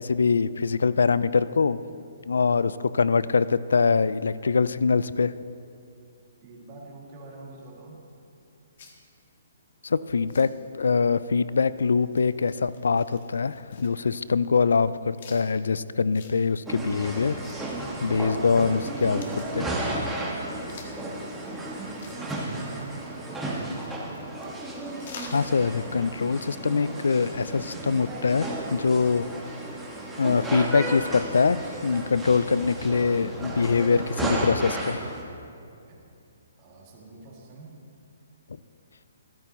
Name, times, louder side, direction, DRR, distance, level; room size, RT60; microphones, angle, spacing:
voice 1, 0.0-1.8 2.3-5.3 9.8-17.4 18.0-19.2 19.5-19.7 25.3-29.3 30.2-35.0, left 5 dB, 80° left, 16 dB, 0.4 m, -23 dB
voice 2, 6.4-8.0 20.6-23.7 35.9-36.1 36.6-37.8, right 2 dB, 35° right, -3 dB, 2.3 m, -46 dB
sound 1, 7.6-26.3, left 4 dB, 55° left, 1.7 m, -52 dB
sound 2, 16.7-35.2, right 1 dB, 10° right, 1.6 m, -33 dB
13.5 x 12.5 x 3.1 m, 2.5 s
hypercardioid pair, 145°, 0 cm